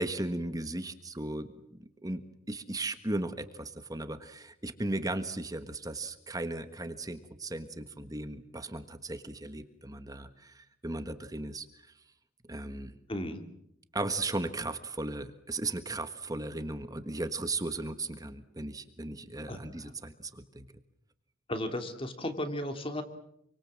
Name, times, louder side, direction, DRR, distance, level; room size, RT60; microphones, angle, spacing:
voice 1, 0.0-2.2 2.5-11.7 12.5-12.9 13.9-20.7, right 2 dB, 20° right, 10 dB, 1.4 m, -36 dB
voice 2, 13.1-13.4 19.5-19.9 21.5-23.0, left 1 dB, 30° left, 6 dB, 2.8 m, -35 dB
28.0 x 24.5 x 7.5 m, 0.76 s
head